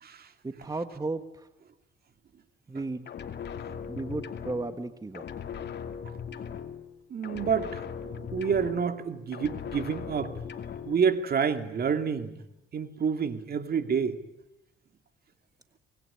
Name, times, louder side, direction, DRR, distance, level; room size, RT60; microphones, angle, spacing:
voice 1, 0.4-1.5 2.7-3.1 3.9-5.3, right 3 dB, 20° right, 9 dB, 1.5 m, -34 dB
sound 1, 3.0-4.9 5.1-7.0 7.2-9.1 9.3-11.0, left 7 dB, 60° left, 2.6 m, -39 dB
voice 2, 7.1-10.3 10.9-12.3 12.7-14.2, right 6 dB, 50° right, 8 dB, 2.3 m, -28 dB
25.0 x 20.5 x 9.9 m, 0.90 s
cardioid pair, 90°, 20 cm